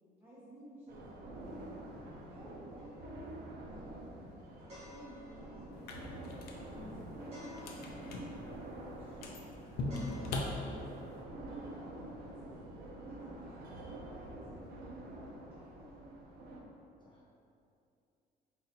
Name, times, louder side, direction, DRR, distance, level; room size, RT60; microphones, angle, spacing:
voice 1, 0.2-1.7 2.2-4.0 4.7-6.2 6.7-8.0 8.4-9.2 9.7-11.1 11.4-13.5 13.8-16.2, right 1 dB, 15° right, -11 dB, 1.0 m, -55 dB
sound 1, 0.9-16.6, right 1 dB, 65° right, 0.7 m, -47 dB
sound 2, 2.8-14.0, equal, 35° right, 1.5 m, -57 dB
sound 3, 5.7-11.2, left 2 dB, 65° left, 0.5 m, -42 dB
voice 2, 17.0-17.3, left 1 dB, 25° left, -6 dB, 0.7 m, -63 dB
5.5 x 2.6 x 2.7 m, 2.6 s
cardioid pair, 110°, 17 cm